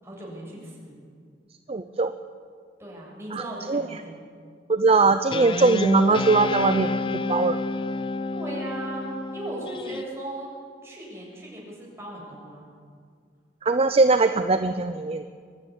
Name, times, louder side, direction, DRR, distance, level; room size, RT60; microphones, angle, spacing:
voice 1, 0.0-1.0 2.8-4.3 8.3-10.5 10.8-12.7, right 1 dB, 15° right, -4 dB, 7.3 m, -37 dB
voice 2, 1.7-2.1 3.3-3.4 3.7-3.8 4.7-6.9 7.3-7.6 13.6-15.2, right 3 dB, 35° right, 9 dB, 0.6 m, -20 dB
Guitar, 5.3-10.0, left 3 dB, 30° left, 0.5 m, -29 dB
23.5 x 12.0 x 10.0 m, 2.1 s
head